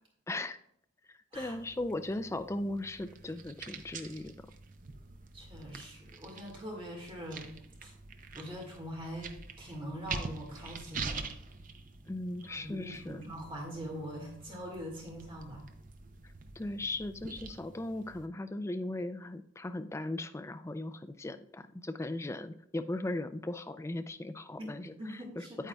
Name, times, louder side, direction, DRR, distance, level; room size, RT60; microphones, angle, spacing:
voice 1, 0.3-0.6 1.1-4.3 12.1-13.2 16.6-25.7, left 2 dB, 15° left, 9 dB, 0.3 m, -38 dB
sound 1, 1.3-18.3, right 4 dB, 40° right, 0.6 m, -46 dB
voice 2, 5.3-7.5 7.8-7.9 8.3-11.2 12.5-15.7 24.6-25.7, equal, 25° right, -1 dB, 1.8 m, -43 dB
9.0 x 8.7 x 2.3 m, 0.72 s
head